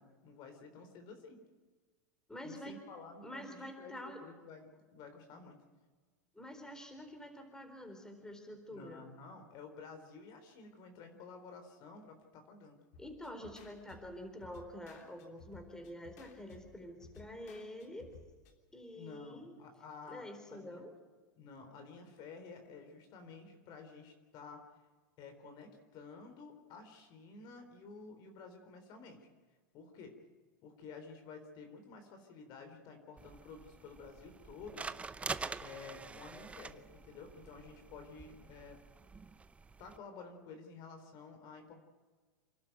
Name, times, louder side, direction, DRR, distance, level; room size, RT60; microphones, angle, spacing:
voice 1, 0.0-1.4 2.4-5.6 8.7-12.8 18.9-20.8 21.4-24.6 25.2-29.3 29.7-30.1 30.6-34.9 35.6-38.8 39.8-41.8, left 4 dB, 45° left, 6 dB, 4.0 m, -52 dB
voice 2, 2.3-2.8 3.2-4.2 6.3-9.0 13.0-18.2 18.7-19.6 20.1-20.9, left 1 dB, 5° left, 5 dB, 4.1 m, -47 dB
sound 1, 12.9-18.5, left 4 dB, 65° left, 3.3 m, -58 dB
sound 2, 33.2-40.0, right 4 dB, 15° right, 0.8 m, -46 dB
28.0 x 12.0 x 9.2 m, 1.4 s
hypercardioid pair, 110°, 10 cm